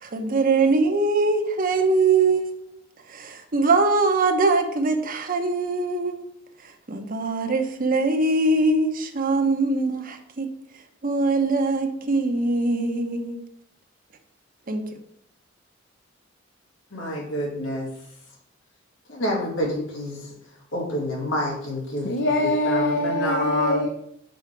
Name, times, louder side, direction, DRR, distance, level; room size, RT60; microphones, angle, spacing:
voice 1, 0.0-2.7 3.1-6.2 6.6-10.5 11.0-13.4 14.7-14.8, right 3 dB, 45° right, 0.8 m, -22 dB
voice 2, 16.9-17.9 19.1-20.3 20.7-22.1 22.6-23.8, left 1 dB, 90° left, 2.5 m, -27 dB
voice 3, 22.0-23.9, left 1 dB, 65° left, 0.7 m, -23 dB
6.4 x 4.7 x 4.5 m
head